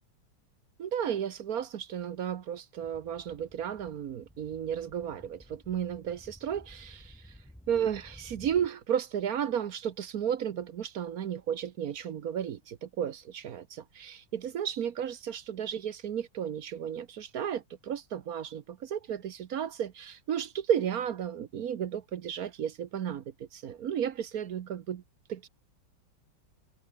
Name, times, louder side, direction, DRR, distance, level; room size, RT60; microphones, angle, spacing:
voice 1, 0.8-7.3 7.7-25.0 25.3-25.5, right 9 dB, 55° right, 1.2 m, -33 dB
sound 1, 2.8-8.7, equal, 5° left, 0.6 m, -54 dB
omnidirectional pair, 2.1 m